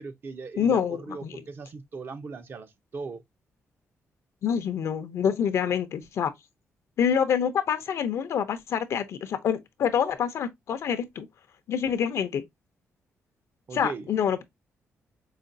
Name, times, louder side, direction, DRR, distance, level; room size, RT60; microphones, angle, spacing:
voice 1, 0.0-3.2 13.7-14.1, right 4 dB, 45° right, 0.7 m, -39 dB
voice 2, 0.6-1.4 4.4-6.3 7.0-11.3 11.7-12.4 13.7-14.4, left 8 dB, 70° left, 0.6 m, -26 dB
4.8 x 2.3 x 2.5 m
cardioid pair, 115°, 5 cm